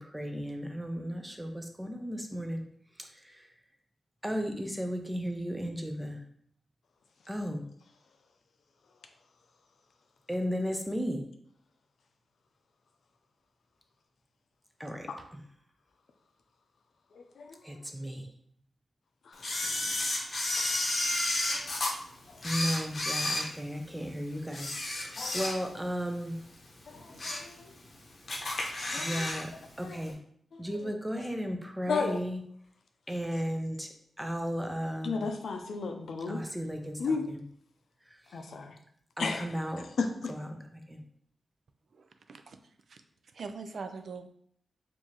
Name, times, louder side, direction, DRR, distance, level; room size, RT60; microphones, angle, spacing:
voice 1, 0.0-2.6 3.0-3.5 4.2-6.2 7.3-7.7 10.3-11.2 14.8-15.4 17.6-18.3 22.4-26.4 29.0-29.5 29.8-30.2 30.6-32.4 33.1-35.3 36.3-37.4 38.1-38.5 39.2-39.8 40.2-41.0, equal, 10° right, 4 dB, 0.5 m, -35 dB
voice 2, 17.1-17.6 19.3-19.8 21.5-21.6 22.3-22.4 25.2-25.4 26.9-27.7 28.9-29.3 29.8-30.0 30.5-30.6 31.9-32.2 35.0-36.4 37.0-37.3 38.3-38.8 39.2-39.5 40.0-40.3, left 4 dB, 80° left, 5 dB, 0.5 m, -34 dB
Camera, 19.4-21.9 22.4-24.0 24.5-25.9 26.2-26.4 26.9-27.5 27.9-28.0 28.3-29.4 29.7-29.8, left 2 dB, 50° left, 0.8 m, -32 dB
voice 3, 41.9-42.6 42.9-43.0 43.3-44.3, right 4 dB, 65° right, 7 dB, 0.3 m, -42 dB
4.5 x 2.6 x 2.9 m, 0.66 s
wide cardioid pair, 100°, 0 cm